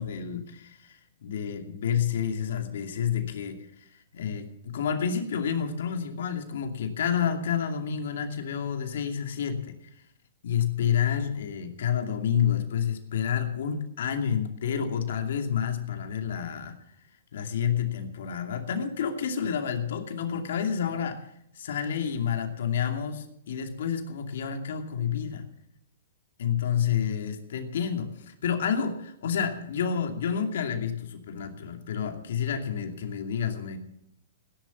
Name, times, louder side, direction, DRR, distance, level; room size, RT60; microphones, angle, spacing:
voice 1, 0.0-9.7 10.4-16.8 17.3-21.3 21.5-25.5 26.4-33.8, left 8 dB, 70° left, 5 dB, 2.6 m, -29 dB
16.0 x 11.0 x 7.0 m, 0.75 s
hypercardioid pair, 155°, 0 cm